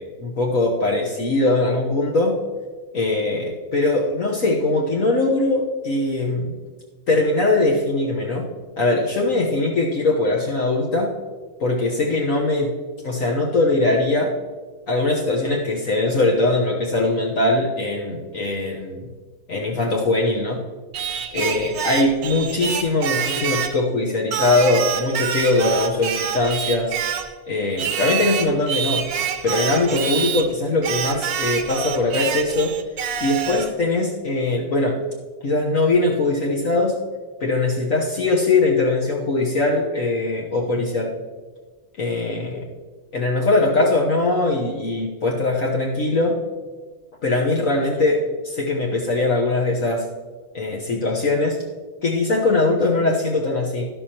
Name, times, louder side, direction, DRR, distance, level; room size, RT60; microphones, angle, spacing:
voice 1, 0.0-2.4 2.9-6.5 7.1-8.5 8.8-11.1 11.6-12.7 13.0-14.3 14.9-19.1 19.5-20.6 21.3-27.0 27.4-29.0 29.4-32.7 33.2-35.0 35.4-36.9 37.4-41.1 42.0-42.7 43.1-46.4 47.2-50.0 50.5-51.6 52.0-53.9, left 2 dB, 55° left, -2 dB, 1.5 m, -21 dB
Singing, 20.9-23.8 24.3-27.3 27.8-30.5 30.8-33.7, right 8 dB, 70° right, 1.2 m, -26 dB
12.0 x 12.0 x 2.9 m, 1.4 s
omnidirectional pair, 1.8 m